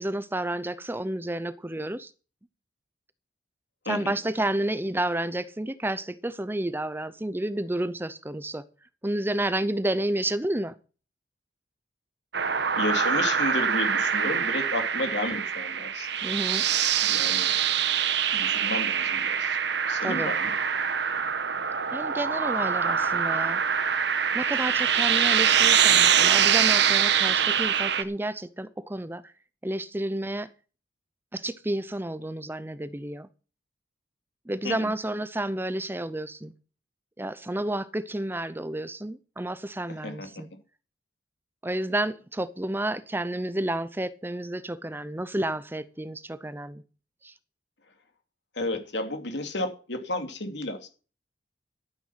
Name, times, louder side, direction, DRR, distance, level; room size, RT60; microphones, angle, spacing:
voice 1, 0.0-2.1 3.9-8.6 9.0-10.7 16.2-16.6 20.0-20.3 21.9-23.6 24.3-29.3 29.6-30.5 31.3-33.3 34.5-36.5 37.2-40.5 41.6-46.8 47.2-47.3, right 1 dB, 10° right, 0.7 m, -30 dB
sound 1, 12.3-28.0, right 8 dB, 65° right, 1.2 m, -24 dB
voice 2, 12.8-16.1 17.0-17.5 18.3-19.6 19.9-20.5 34.6-34.9 40.0-40.3 48.5-50.9, left 2 dB, 70° left, 2.8 m, -32 dB
13.0 x 9.3 x 5.8 m
head